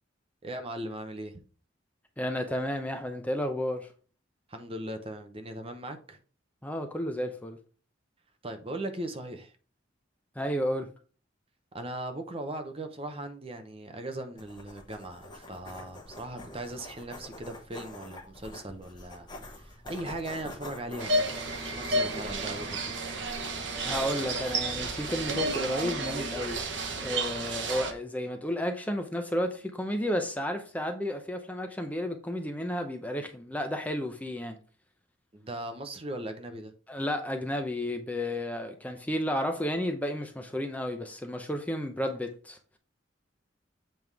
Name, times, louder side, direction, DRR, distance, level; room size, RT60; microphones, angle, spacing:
voice 1, 0.4-1.4 4.5-6.2 8.4-9.5 11.7-21.3 21.6-22.8 35.3-36.7, right 1 dB, 30° right, 0.9 m, -39 dB
voice 2, 2.2-3.9 6.6-7.6 10.4-10.9 23.9-26.6 27.0-34.6 36.9-42.6, left 1 dB, 10° left, 0.6 m, -32 dB
sound 1, 14.4-27.1, left 1 dB, 25° left, 1.3 m, -47 dB
sound 2, 21.0-27.9, right 2 dB, 65° right, 1.1 m, -31 dB
7.8 x 3.6 x 4.7 m
head